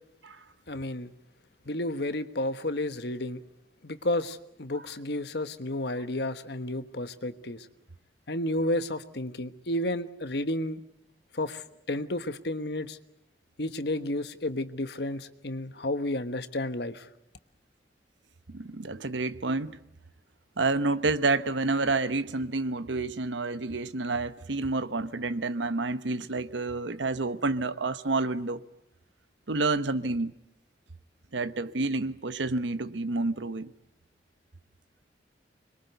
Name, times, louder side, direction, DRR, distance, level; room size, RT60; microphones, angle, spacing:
voice 1, 0.7-1.1 1.7-3.4 3.8-7.7 8.3-10.8 11.3-13.0 13.6-17.1, left 1 dB, 65° left, 1.3 m, -31 dB
voice 2, 18.5-19.8 20.6-28.6 29.5-30.3 31.3-33.7, right 3 dB, 90° right, 1.0 m, -29 dB
25.5 x 22.5 x 8.1 m
head